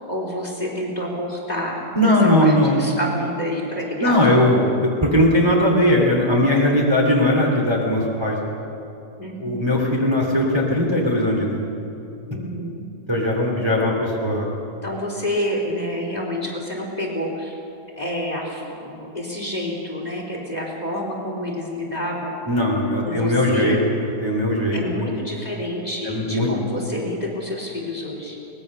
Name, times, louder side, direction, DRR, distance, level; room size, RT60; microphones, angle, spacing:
voice 1, 0.1-4.4 9.2-9.6 12.3-12.9 14.8-17.6 18.0-22.3 23.0-23.8 24.5-28.4, left 1 dB, 25° left, -2 dB, 3.7 m, -28 dB
voice 2, 1.9-2.8 4.0-4.7 5.0-8.4 9.4-11.6 13.1-14.5 22.5-25.1 26.0-26.5, left 1 dB, 15° right, -2 dB, 2.8 m, -19 dB
24.0 x 19.5 x 6.7 m, 2.8 s
omnidirectional pair, 1.8 m